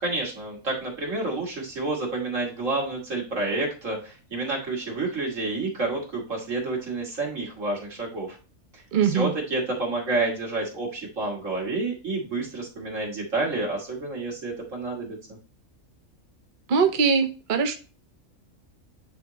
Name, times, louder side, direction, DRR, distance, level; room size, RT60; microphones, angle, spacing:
voice 1, 0.0-8.4 8.7-15.4, right 2 dB, 65° right, 2.8 m, -29 dB
voice 2, 8.9-9.3 16.7-17.7, right 6 dB, 50° right, 0.7 m, -22 dB
9.3 x 3.6 x 2.9 m
omnidirectional pair, 1.4 m